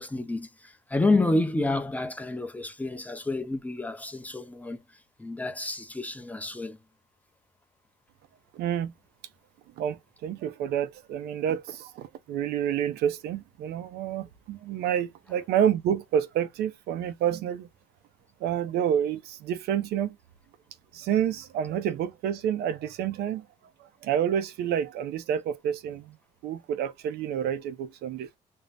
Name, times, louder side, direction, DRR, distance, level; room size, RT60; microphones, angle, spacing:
voice 1, 0.0-4.8 5.2-6.8, left 2 dB, 10° left, 0.5 m, -29 dB
voice 2, 8.5-8.9 9.8-17.7 18.4-20.2 20.9-23.5 23.8-26.2 26.4-28.3, right 9 dB, 75° right, 0.5 m, -29 dB
2.6 x 2.0 x 3.2 m
cardioid pair, 110°, 17 cm